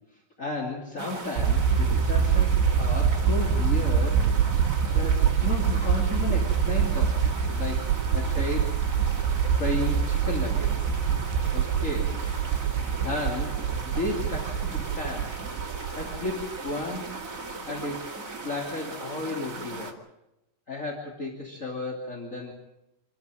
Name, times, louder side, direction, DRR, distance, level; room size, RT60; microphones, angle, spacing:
voice 1, 0.0-4.3 4.9-7.2 7.5-7.8 8.1-8.8 9.5-10.9 11.5-12.2 13.0-15.3 15.9-17.2 17.6-20.0 20.7-22.5, left 2 dB, 25° left, -1 dB, 2.1 m, -34 dB
sound 1, 1.0-19.9, right 3 dB, 25° right, 1.8 m, -38 dB
sound 2, 1.4-17.0, right 7 dB, 80° right, 3.1 m, -25 dB
27.0 x 13.0 x 9.0 m, 0.92 s
omnidirectional pair, 5.1 m